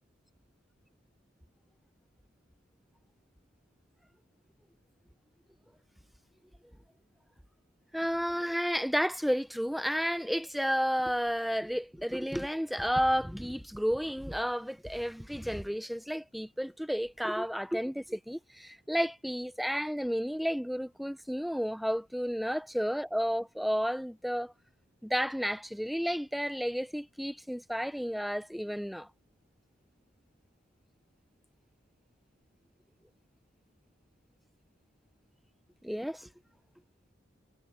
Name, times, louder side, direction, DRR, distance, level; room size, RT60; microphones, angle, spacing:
voice 1, 7.9-24.5 25.0-29.1 35.8-36.3, equal, ahead, 0.8 m, -32 dB
head